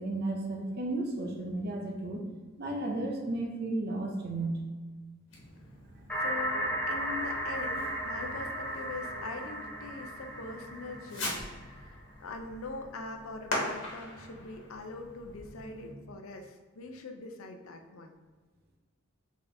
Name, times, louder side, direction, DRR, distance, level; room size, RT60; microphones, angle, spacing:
voice 1, 0.0-2.2 2.6-4.6, right 2 dB, 50° right, 1 dB, 0.7 m, -33 dB
Fireworks, 5.3-16.0, left 1 dB, 65° left, 1.3 m, -42 dB
sound 1, 6.1-11.8, equal, 10° left, 0.6 m, -35 dB
voice 2, 6.2-18.2, left 2 dB, 80° left, 4 dB, 0.6 m, -42 dB
4.2 x 3.5 x 3.4 m, 1.4 s
head